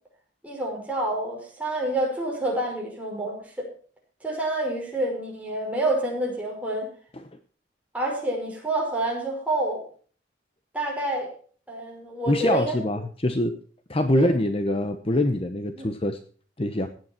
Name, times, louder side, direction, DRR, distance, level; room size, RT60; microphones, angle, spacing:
voice 1, 0.4-3.7 4.2-6.9 7.9-9.8 10.7-11.3 11.7-12.8 14.1-14.3 15.8-15.9, right 1 dB, 10° right, -1 dB, 5.4 m, -28 dB
voice 2, 12.3-13.6 13.9-16.2 16.6-16.9, left 1 dB, 30° left, 8 dB, 1.0 m, -24 dB
17.0 x 9.5 x 4.5 m, 0.44 s
head